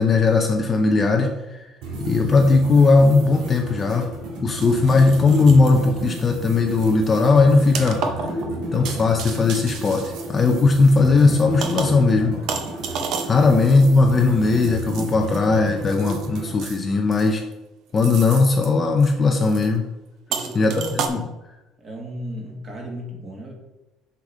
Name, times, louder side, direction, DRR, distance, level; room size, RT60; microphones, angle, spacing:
voice 1, 0.0-1.6 2.0-4.1 4.4-8.1 8.7-12.4 13.3-17.4 17.9-19.9 20.6-21.3, left 3 dB, 20° left, 3 dB, 0.6 m, -18 dB
sound 1, 1.8-16.6, right 1 dB, 85° right, 2.4 m, -33 dB
sound 2, 4.5-5.8 6.2-6.4 6.8-10.9 11.6-12.1 12.5-15.4 15.8-16.8 17.1-17.5 18.0-18.7 19.0-19.1 19.4-19.7 20.3-21.1, right 5 dB, 50° right, 0.8 m, -32 dB
voice 2, 13.3-13.8 20.3-21.3 21.8-23.5, equal, 25° right, 0 dB, 1.7 m, -36 dB
6.2 x 5.8 x 5.0 m, 1.0 s
cardioid pair, 180°, 0 cm